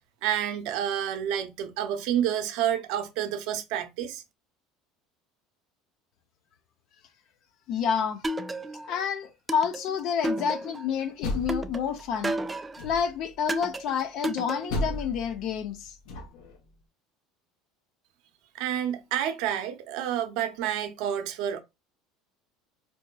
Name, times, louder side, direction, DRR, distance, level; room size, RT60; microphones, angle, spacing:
voice 1, 0.2-4.2 18.5-21.6, right 10 dB, 70° right, 0.7 m, -29 dB
voice 2, 7.7-8.2 8.8-12.4 12.8-16.0, left 7 dB, 55° left, 0.5 m, -29 dB
sound 1, 8.2-9.0 9.5-10.9 11.5-12.9 13.5-14.9, right 1 dB, 15° right, 0.3 m, -32 dB
Door, 11.0-12.2 12.8-13.3 14.7-16.6, left 1 dB, 70° left, 0.9 m, -34 dB
4.3 x 2.6 x 2.3 m
supercardioid pair, 125°, 0 cm